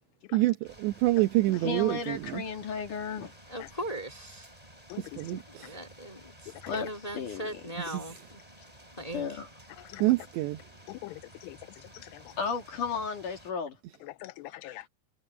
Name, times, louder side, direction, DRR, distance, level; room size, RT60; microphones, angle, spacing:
voice 1, 0.3-2.4 5.0-5.4 7.8-8.0 10.0-10.6, right 18 dB, 75° right, 3.2 m, -27 dB
sound 1, 0.6-13.5, equal, 5° right, 6.6 m, -53 dB
voice 2, 1.6-3.3 6.7-6.9 7.1-7.6 9.1-9.5 12.4-13.8 14.5-14.8, left 5 dB, 50° left, 3.5 m, -34 dB
voice 3, 3.5-4.5 5.6-8.4 9.0-9.4, right 1 dB, 15° left, 1.4 m, -39 dB
voice 4, 6.5-6.9 9.8-10.2 10.9-12.4 14.0-14.9, left 18 dB, 80° left, 2.6 m, -44 dB
omnidirectional pair, 5.3 m